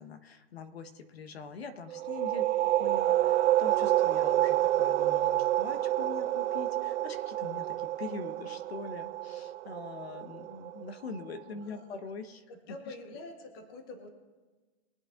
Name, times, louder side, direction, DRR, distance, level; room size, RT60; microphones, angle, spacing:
voice 1, 0.0-2.5 2.8-12.4 12.9-13.0, left 4 dB, 60° left, 9 dB, 1.4 m, -43 dB
sound 1, 1.9-11.3, right 14 dB, 70° right, 0.5 m, -28 dB
voice 2, 11.7-12.0 12.5-14.1, left 2 dB, 20° left, 6 dB, 1.0 m, -46 dB
22.5 x 8.4 x 3.8 m, 1.3 s
hypercardioid pair, 170°, 35 cm